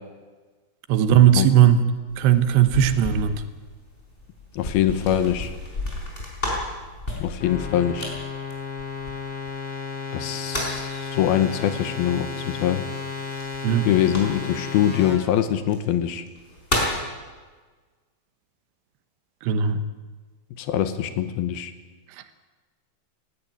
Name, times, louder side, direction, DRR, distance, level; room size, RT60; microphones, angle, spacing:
voice 1, 0.9-1.8 2.2-3.4 13.6-13.9 19.4-19.8, right 9 dB, 80° right, 10 dB, 3.3 m, -17 dB
sound 1, 2.1-9.5 10.1-10.9 13.3-14.7 15.6-15.8 16.3-17.1, left 1 dB, 15° left, 4.8 m, -32 dB
voice 2, 4.5-5.5 7.2-8.1 10.1-12.8 13.8-16.2 20.6-21.7, left 11 dB, 70° left, 10 dB, 2.7 m, -23 dB
sound 2, 7.4-15.1, left 5 dB, 35° left, 5.4 m, -33 dB
17.5 x 17.5 x 9.3 m, 1.4 s
omnidirectional pair, 4.8 m